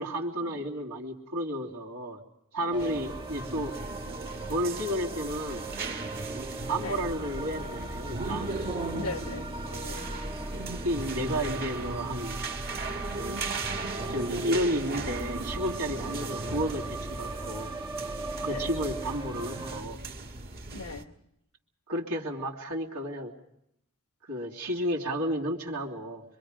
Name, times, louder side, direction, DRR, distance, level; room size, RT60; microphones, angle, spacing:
voice 1, 0.0-2.2 2.5-3.8 4.5-5.7 6.7-8.6 10.8-12.4 13.1-13.4 14.1-17.7 18.4-20.0 21.9-23.3 24.2-26.2, equal, 80° right, -3 dB, 3.0 m, -32 dB
voice 2, 2.7-3.0 6.8-7.1 8.9-10.1 18.4-18.7 20.7-21.1, left 3 dB, 80° left, 8 dB, 1.2 m, -40 dB
sound 1, 2.7-19.8, right 2 dB, 20° right, 0.8 m, -38 dB
sound 2, 2.8-21.0, right 3 dB, 45° right, 1.7 m, -37 dB
25.5 x 23.5 x 5.2 m, 0.77 s
head